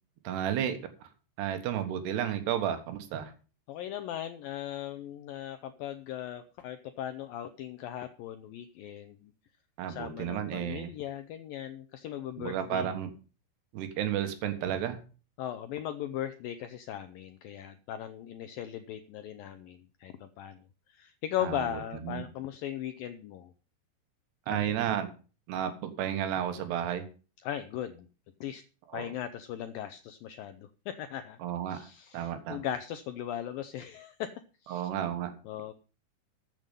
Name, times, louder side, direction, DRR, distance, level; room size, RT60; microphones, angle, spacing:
voice 1, 0.2-0.8 1.4-3.3 9.8-10.9 12.4-13.1 13.7-15.0 21.4-22.3 24.5-25.1 25.5-27.1 28.9-29.1 31.4-31.9 32.1-32.6 34.7-35.3, right 10 dB, 75° right, 9 dB, 3.4 m, -32 dB
voice 2, 3.7-9.3 9.9-13.0 15.4-20.6 20.9-23.5 24.5-25.0 27.4-28.1 28.4-28.6 28.9-31.4 31.7-34.3 34.6-34.8 35.4-35.7, left 11 dB, 85° left, 10 dB, 2.0 m, -38 dB
14.0 x 7.8 x 5.3 m, 0.36 s
omnidirectional pair, 5.0 m